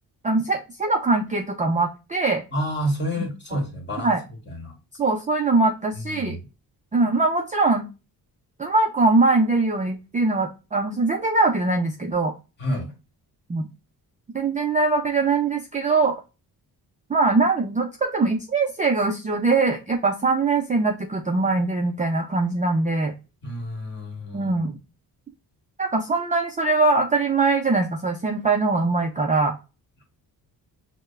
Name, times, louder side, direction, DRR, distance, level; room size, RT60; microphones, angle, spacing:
voice 1, 0.2-2.4 3.2-3.6 4.0-4.2 5.0-6.4 6.9-7.9 8.6-12.3 13.5-13.7 14.3-16.2 17.1-23.1 24.3-24.7 25.8-29.5, right 3 dB, 20° right, 2 dB, 0.4 m, -22 dB
voice 2, 2.5-4.2 4.5-4.8 5.9-6.4 12.6-12.9 23.4-24.5, equal, 25° left, 1 dB, 1.7 m, -29 dB
6.5 x 2.2 x 2.3 m, 0.29 s
wide cardioid pair, 165°, 39 cm